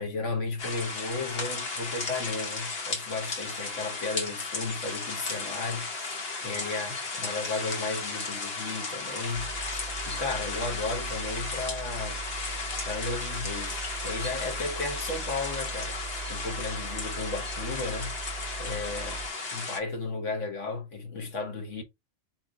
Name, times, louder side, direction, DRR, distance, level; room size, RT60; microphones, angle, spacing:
voice 1, 0.0-9.5 9.7-12.2 12.6-16.0 16.3-19.2 19.5-21.8, left 3 dB, 80° left, 1.7 m, -34 dB
sound 1, 0.6-19.8, left 3 dB, 55° left, 1.2 m, -35 dB
sound 2, 9.3-19.3, right 4 dB, 35° left, 1.0 m, -40 dB
4.6 x 3.1 x 3.7 m
omnidirectional pair, 1.2 m